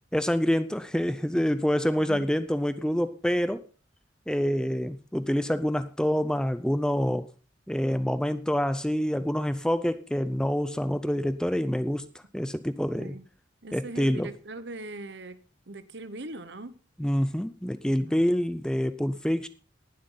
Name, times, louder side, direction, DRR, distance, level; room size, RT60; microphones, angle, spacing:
voice 1, 0.1-3.7 4.3-7.3 7.7-12.1 12.3-13.2 13.7-14.3 17.0-19.5, equal, 5° left, 0.5 m, -26 dB
voice 2, 13.6-16.8 18.1-18.3, right 2 dB, 65° right, 1.1 m, -41 dB
19.5 x 7.8 x 3.9 m
head